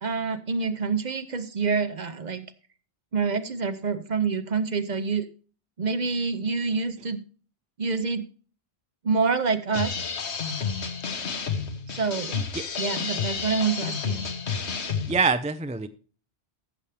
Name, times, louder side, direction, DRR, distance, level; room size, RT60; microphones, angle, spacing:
voice 1, 0.0-2.5 3.1-5.3 5.8-7.2 7.8-8.2 9.0-10.0 11.9-12.4 12.8-14.2, right 5 dB, 45° right, 12 dB, 0.8 m, -27 dB
sound 1, 9.7-15.3, left 6 dB, 70° left, 1.4 m, -30 dB
voice 2, 15.1-15.9, right 4 dB, 10° right, 10 dB, 0.3 m, -24 dB
14.0 x 7.1 x 3.3 m, 0.38 s
omnidirectional pair, 1.2 m